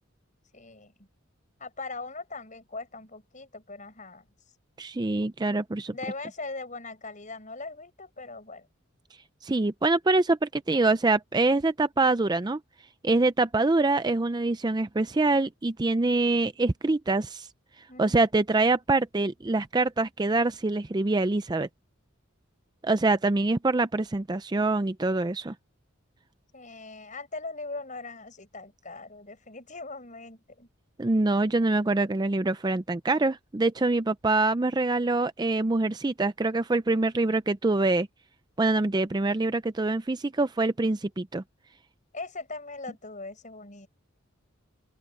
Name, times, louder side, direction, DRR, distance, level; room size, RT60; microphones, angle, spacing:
voice 1, 0.5-0.9 1.6-4.3 5.9-8.7 17.9-18.2 26.5-30.7 42.1-43.9, left 3 dB, 35° left, 7.1 m, -40 dB
voice 2, 4.8-6.0 9.4-12.6 13.0-17.5 17.8-21.7 22.8-25.5 31.0-38.1 38.6-41.4, right 2 dB, 20° right, 0.4 m, -25 dB
open air
head